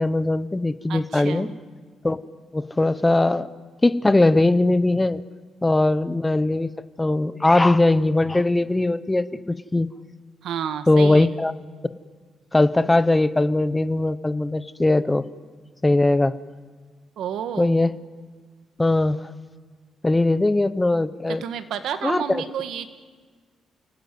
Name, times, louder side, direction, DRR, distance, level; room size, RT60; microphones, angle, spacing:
voice 1, 0.0-1.5 2.0-2.2 2.5-3.5 3.8-5.2 5.6-6.7 7.0-9.9 10.9-11.5 12.5-15.2 15.8-16.3 17.6-17.9 18.8-19.2 20.0-21.4 22.0-22.4, left 2 dB, 10° left, 14 dB, 0.9 m, -20 dB
voice 2, 0.9-1.6 10.4-11.3 17.2-17.8 21.3-22.9, right 8 dB, 80° right, 10 dB, 1.7 m, -30 dB
29.0 x 18.0 x 9.4 m, 1.5 s
cardioid pair, 140°, 0 cm